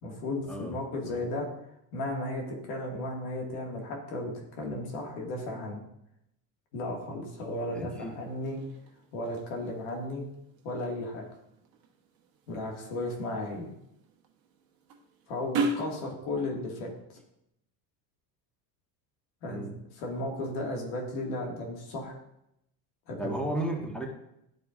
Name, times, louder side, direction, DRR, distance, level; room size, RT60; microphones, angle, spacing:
voice 1, 0.0-1.5 1.9-5.8 6.7-8.6 9.1-10.3 10.6-11.3 12.5-13.7 15.3-16.9 19.4-22.1 23.1-23.4, left 1 dB, 75° left, 0 dB, 2.1 m, -35 dB
sound 1, 7.3-16.0, right 2 dB, 45° right, 1.2 m, -39 dB
voice 2, 7.7-8.1 19.5-19.7 23.2-24.1, right 1 dB, ahead, 0 dB, 1.5 m, -34 dB
11.5 x 4.5 x 2.5 m, 0.79 s
supercardioid pair, 100°, 50 cm